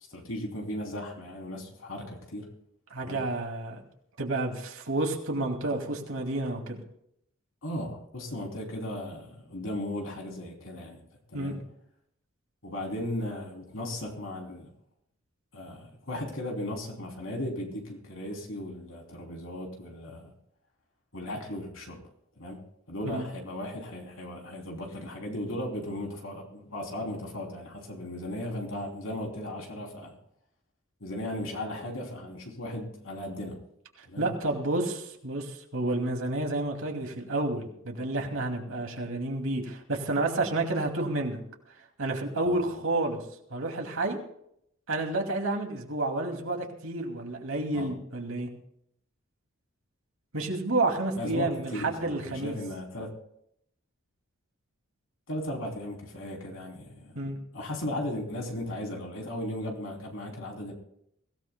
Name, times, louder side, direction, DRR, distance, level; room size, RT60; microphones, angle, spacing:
voice 1, 0.1-2.5 3.0-3.2 7.6-11.0 11.3-11.6 12.6-14.7 15.5-20.3 21.1-22.0 22.4-22.6 22.9-30.1 31.0-33.6 34.1-34.3 42.4-42.6 47.7-47.9 51.1-53.1 55.3-57.1 57.5-60.7, left 1 dB, 65° left, 1 dB, 3.2 m, -36 dB
voice 2, 2.9-3.8 4.2-6.8 11.3-11.6 23.0-23.2 34.2-41.4 42.0-43.2 43.5-44.2 44.9-48.5 50.3-52.5 57.2-57.4, right 2 dB, 70° right, 2 dB, 2.5 m, -30 dB
23.5 x 16.5 x 2.3 m, 0.72 s
head